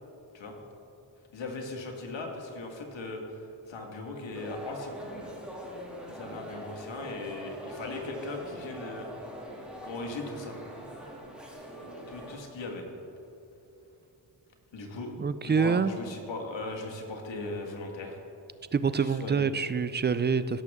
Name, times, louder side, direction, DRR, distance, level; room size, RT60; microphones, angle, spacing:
voice 1, 1.3-3.4 3.7-5.0 6.1-9.1 9.8-10.6 12.1-12.9 14.7-15.1 15.5-18.2 19.0-19.5, left 2 dB, 70° left, 1 dB, 1.8 m, -38 dB
sound 1, 4.3-12.4, equal, ahead, 2.4 m, -42 dB
voice 2, 15.2-15.9 18.7-20.6, right 5 dB, 25° right, 14 dB, 0.3 m, -26 dB
16.5 x 6.6 x 3.6 m, 3.0 s
cardioid pair, 70°, 46 cm